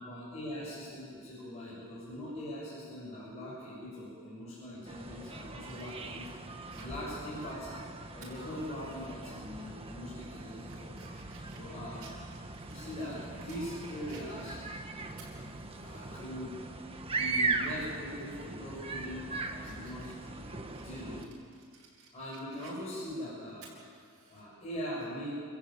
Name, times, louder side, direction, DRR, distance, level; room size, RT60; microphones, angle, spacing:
voice 1, 0.0-6.3 6.7-7.8 8.1-10.9 11.5-12.1 12.6-14.6 15.8-16.6 17.1-21.3 22.1-23.7 24.3-25.3, equal, 30° left, -9 dB, 7.6 m, -41 dB
sound 1, 4.8-21.3, right 3 dB, 25° right, 1.4 m, -39 dB
Fire, 5.2-9.1 9.5-9.6 10.1-13.7 14.1-16.1 16.5-16.6 18.1-18.4 18.8-24.4, right 4 dB, 85° right, 7.6 m, -58 dB
28.5 x 15.0 x 9.1 m, 2.2 s
head